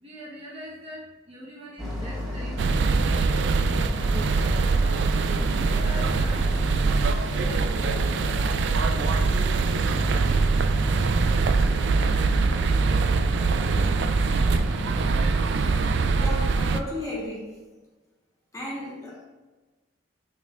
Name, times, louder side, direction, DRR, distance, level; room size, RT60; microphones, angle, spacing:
voice 1, 0.0-3.8 4.1-4.9 5.5-6.6 7.2-8.2 8.7-10.6, equal, 30° right, 1.2 m, -42 dB
Boat Water vehicle, 1.8-16.5, equal, 5° right, 1.9 m, -32 dB
sound 1, 2.6-16.8, right 4 dB, 60° right, 0.3 m, -23 dB
voice 2, 16.1-17.7 18.5-19.2, left 1 dB, 15° left, 1.2 m, -35 dB
6.4 x 5.9 x 2.5 m
head